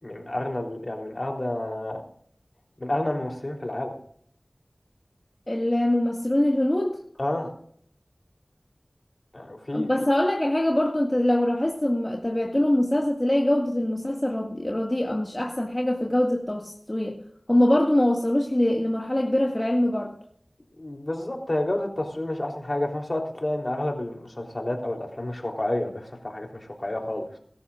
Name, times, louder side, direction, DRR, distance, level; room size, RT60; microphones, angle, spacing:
voice 1, 0.0-2.0 2.8-4.0 7.2-7.5 9.3-9.9 20.7-27.2, left 1 dB, 50° left, 2 dB, 3.5 m, -30 dB
voice 2, 5.5-7.0 9.7-17.2 17.5-20.1, left 1 dB, 30° left, 0 dB, 2.0 m, -23 dB
22.0 x 13.0 x 2.5 m, 0.62 s
wide cardioid pair, 40°, 0 cm